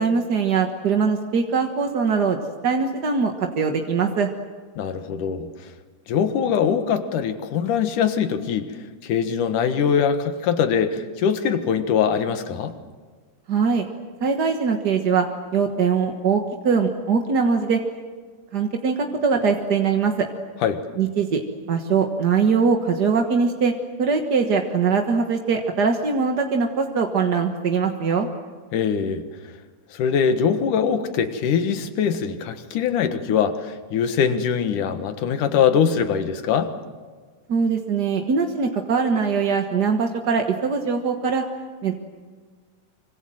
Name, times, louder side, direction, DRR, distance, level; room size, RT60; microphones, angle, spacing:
voice 1, 0.0-2.4 2.6-4.3 13.5-13.8 14.2-15.3 15.5-17.8 18.5-20.3 21.0-21.4 21.7-28.3 37.5-41.4 41.8-41.9, right 5 dB, 50° right, 4 dB, 1.3 m, -22 dB
voice 2, 4.8-5.5 6.1-8.7 9.0-12.7 20.6-20.8 28.7-29.2 29.9-36.7, left 7 dB, 75° left, 8 dB, 3.0 m, -22 dB
25.5 x 25.0 x 7.8 m, 1.5 s
omnidirectional pair, 3.7 m